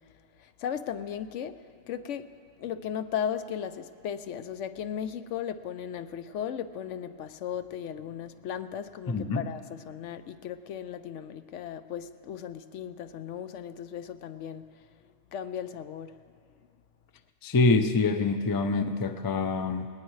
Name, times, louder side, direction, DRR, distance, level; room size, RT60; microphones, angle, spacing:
voice 1, 0.4-2.3 2.6-14.8 15.3-16.1, left 8 dB, 75° left, 11 dB, 0.9 m, -36 dB
voice 2, 9.1-9.5 17.4-19.9, left 3 dB, 35° left, 9 dB, 0.3 m, -25 dB
19.5 x 19.0 x 3.2 m, 2.3 s
omnidirectional pair, 1.3 m